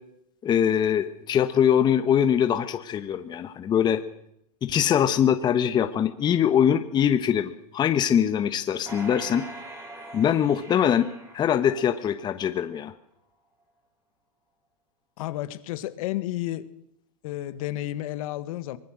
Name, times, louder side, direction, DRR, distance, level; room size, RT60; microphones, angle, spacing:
voice 1, 0.4-4.0 4.6-9.5 10.1-11.1 11.3-12.9, left 9 dB, 20° left, 9 dB, 1.2 m, -23 dB
sound 1, 8.9-12.3 12.8-12.9, right 2 dB, 15° right, 5.2 m, -43 dB
voice 2, 15.2-16.6 17.2-18.8, left 15 dB, 55° left, 13 dB, 1.7 m, -31 dB
24.0 x 21.0 x 6.4 m, 0.77 s
supercardioid pair, 140°, 21 cm